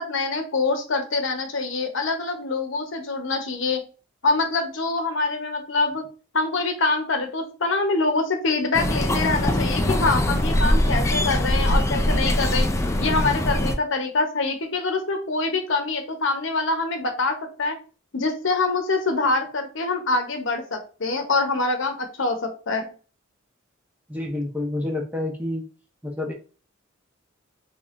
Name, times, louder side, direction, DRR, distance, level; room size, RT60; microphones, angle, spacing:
voice 1, 0.0-3.8 4.2-6.0 6.3-12.7 13.0-17.8 18.1-22.9, left 3 dB, 65° left, 5 dB, 0.9 m, -25 dB
sound 1, 8.7-13.8, left 1 dB, 15° left, 0.4 m, -22 dB
voice 2, 24.1-25.6 26.0-26.3, left 1 dB, 10° right, 0 dB, 0.9 m, -28 dB
3.5 x 3.4 x 2.5 m, 0.36 s
head